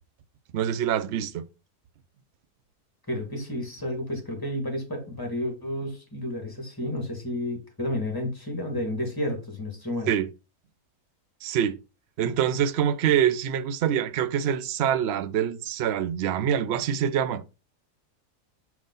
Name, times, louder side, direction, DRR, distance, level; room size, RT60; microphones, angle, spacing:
voice 1, 0.5-1.4 10.1-10.3 11.4-11.8 12.2-17.4, right 9 dB, 65° right, 0.6 m, -25 dB
voice 2, 3.1-10.1, left 1 dB, 15° left, 2.1 m, -31 dB
5.4 x 5.1 x 4.0 m
omnidirectional pair, 1.7 m